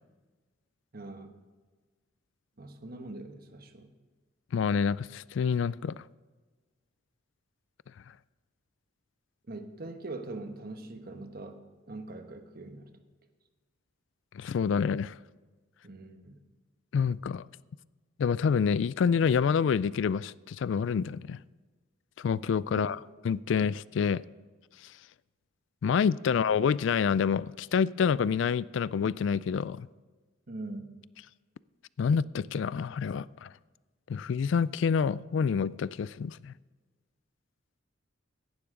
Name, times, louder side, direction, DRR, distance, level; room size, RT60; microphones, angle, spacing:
voice 1, 0.9-1.4 2.6-3.9 9.5-12.9 15.8-16.4 22.7-23.0 30.5-31.0, right 2 dB, 45° right, 1.2 m, -42 dB
voice 2, 4.5-6.0 14.3-15.1 16.9-17.4 18.2-21.4 22.2-23.0 23.2-24.2 25.8-29.9 32.0-33.5 34.1-36.5, left 6 dB, 60° left, 0.3 m, -27 dB
16.5 x 11.5 x 3.7 m
head